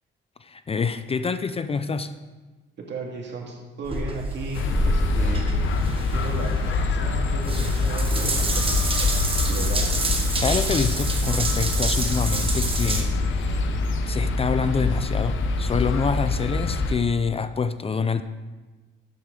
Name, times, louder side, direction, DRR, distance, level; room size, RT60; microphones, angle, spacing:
voice 1, 0.4-2.1 10.4-13.6 14.1-18.2, left 5 dB, 30° left, 11 dB, 0.5 m, -26 dB
voice 2, 2.8-5.5 6.1-10.0, right 3 dB, 60° right, 0 dB, 2.2 m, -35 dB
Water tap faucet / Bathtub (filling or washing) / Drip, 3.8-13.0, right 2 dB, 25° right, 1.4 m, -28 dB
sound 1, 4.5-16.9, left 3 dB, 75° left, 0.9 m, -25 dB
11.5 x 7.8 x 3.8 m, 1.2 s
cardioid pair, 90°, 20 cm